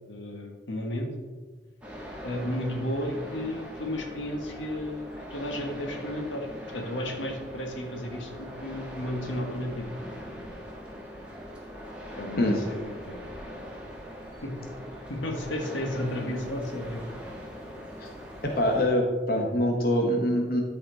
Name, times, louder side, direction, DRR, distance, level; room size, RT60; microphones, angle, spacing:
voice 1, 0.1-1.1 2.2-6.5 6.7-9.9 12.2-13.2 14.4-14.5 15.1-17.0, left 1 dB, 85° left, 3 dB, 1.3 m, -33 dB
sound 1, 1.8-18.9, equal, 5° right, 1.3 m, -41 dB
voice 2, 18.4-20.6, equal, 50° left, 1 dB, 1.0 m, -24 dB
12.5 x 4.3 x 3.9 m, 1.4 s
head